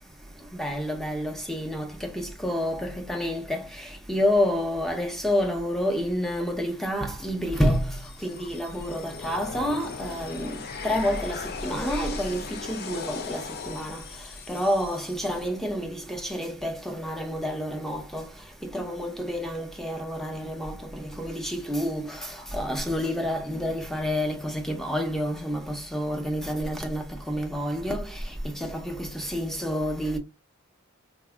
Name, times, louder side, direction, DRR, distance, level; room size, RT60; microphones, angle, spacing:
voice 1, 0.5-8.0 8.2-14.0 14.5-18.3 18.6-28.2 28.4-30.2, equal, ahead, 0.6 m, -29 dB
sound 1, 7.5-15.5, left 5 dB, 45° left, 0.5 m, -38 dB
4.1 x 2.6 x 2.3 m
head